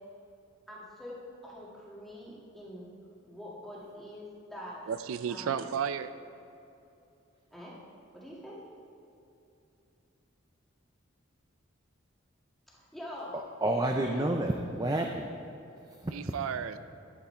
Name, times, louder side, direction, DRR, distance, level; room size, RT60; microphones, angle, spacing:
voice 1, 0.7-2.9 3.2-4.9 5.3-5.7 7.5-7.8 8.1-8.6 12.7-13.4 14.0-14.4, left 1 dB, ahead, -6 dB, 1.8 m, -45 dB
voice 2, 4.9-6.1 16.1-16.8, right 7 dB, 80° right, 12 dB, 0.4 m, -33 dB
voice 3, 13.3-15.3 16.0-16.1, right 1 dB, 20° right, 2 dB, 0.4 m, -29 dB
11.5 x 8.4 x 4.4 m, 2.8 s
head